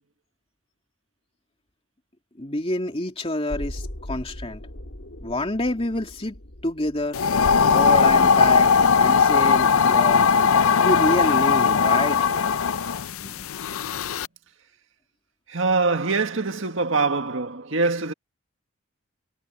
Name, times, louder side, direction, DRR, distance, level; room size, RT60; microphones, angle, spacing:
voice 1, 2.4-4.6 5.2-6.4 6.6-7.2 7.7-10.2 10.8-12.2 13.2-13.5, left 1 dB, 25° left, 2.8 m, -27 dB
sound 1, 3.5-9.5 9.8-9.9, left 1 dB, 65° left, 2.8 m, -40 dB
sound 2, 7.1-14.3, left 6 dB, 90° left, 0.5 m, -19 dB
voice 2, 15.5-18.1, right 3 dB, 65° right, 1.8 m, -23 dB
head